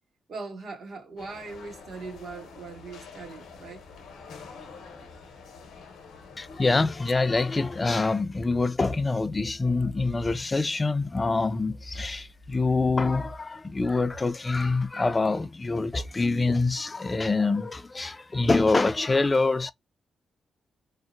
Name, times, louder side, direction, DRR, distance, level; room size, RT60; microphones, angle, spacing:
voice 1, 0.3-3.8, right 4 dB, 65° right, 1.2 m, -40 dB
sound 1, 1.2-8.2, left 5 dB, 85° left, 0.7 m, -47 dB
voice 2, 6.4-19.7, left 3 dB, 25° left, 0.3 m, -25 dB
2.6 x 2.0 x 2.4 m
cardioid pair, 80°, 0 cm